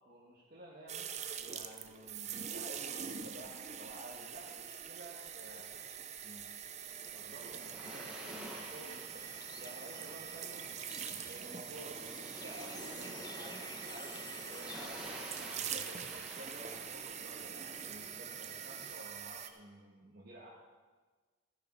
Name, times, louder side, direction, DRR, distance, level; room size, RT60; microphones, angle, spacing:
voice 1, 0.0-6.4 7.1-9.3 9.5-10.7 11.3-20.5, right 1 dB, 50° right, -5 dB, 1.6 m, -52 dB
sound 1, 0.9-19.5, right 8 dB, 35° right, 0.6 m, -44 dB
sound 2, 6.7-18.9, equal, 5° right, 1.5 m, -50 dB
Bird, 9.2-14.9, left 5 dB, 20° left, 0.4 m, -53 dB
13.5 x 9.7 x 4.5 m, 1.4 s
head